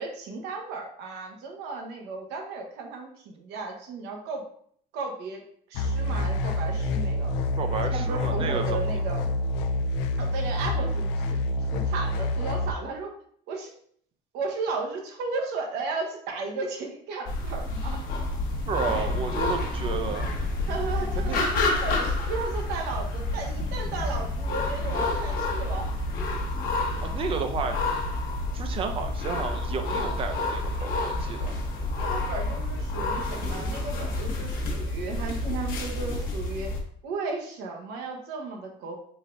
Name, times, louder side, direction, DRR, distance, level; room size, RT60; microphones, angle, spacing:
voice 1, 0.0-4.4 4.9-5.4 5.7-7.3 7.9-9.3 10.2-13.1 13.5-13.7 14.3-18.0 20.7-26.0 32.0-36.8 37.0-38.9, right 4 dB, 70° right, 1 dB, 0.9 m, -35 dB
sound 1, 5.7-12.7, left 1 dB, 80° left, 0.4 m, -27 dB
voice 2, 7.6-8.8 18.7-20.3 21.2-21.4 27.0-27.8 28.5-31.6, right 5 dB, 30° right, 6 dB, 0.4 m, -32 dB
sound 2, 17.3-36.8, left 2 dB, 55° left, 0.9 m, -29 dB
3.9 x 3.3 x 2.5 m, 0.62 s
cardioid pair, 145°, 18 cm